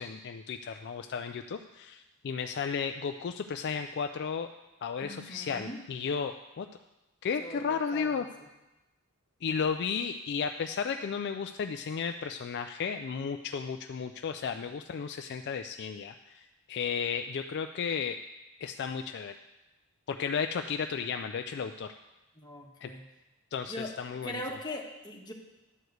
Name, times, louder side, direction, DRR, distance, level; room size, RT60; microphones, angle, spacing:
voice 1, 0.0-4.5 4.8-6.7 7.2-8.2 9.4-18.2 18.6-19.3 20.1-21.9 22.8-22.9 23.5-24.4, left 6 dB, 50° left, 7 dB, 0.3 m, -34 dB
voice 2, 5.0-5.8 7.4-8.3 22.4-23.0 23.7-23.9 24.2-25.3, left 1 dB, 20° left, -1 dB, 1.3 m, -40 dB
11.0 x 4.8 x 7.8 m, 1.0 s
head